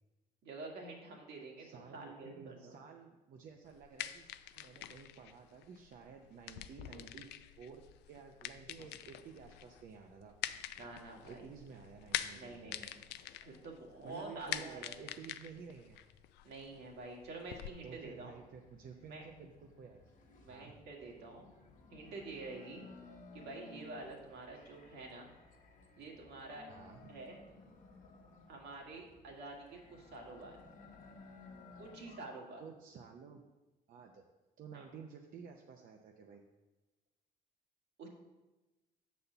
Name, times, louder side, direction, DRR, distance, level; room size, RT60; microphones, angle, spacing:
voice 1, 0.4-2.8 10.8-11.5 12.3-14.9 16.4-18.3 19.1-19.3 20.4-21.5 21.9-22.9 23.3-25.3 26.0-26.7 27.1-27.4 28.5-30.6 31.8-32.6 34.7-34.8 38.0-38.1, right 3 dB, 75° right, 0 dB, 1.8 m, -48 dB
voice 2, 1.6-4.3 4.5-10.3 11.3-12.8 14.0-16.0 17.8-20.1 20.5-20.7 24.5-24.6 26.7-27.0 32.6-33.5 33.9-34.2 34.6-36.4, right 6 dB, 55° right, 2 dB, 0.6 m, -52 dB
sound 1, 3.6-17.7, left 12 dB, 80° left, 0.4 m, -46 dB
sound 2, 17.4-32.2, left 4 dB, 50° left, 1.1 m, -58 dB
6.8 x 4.2 x 6.7 m, 1.1 s
cardioid pair, 110°, 17 cm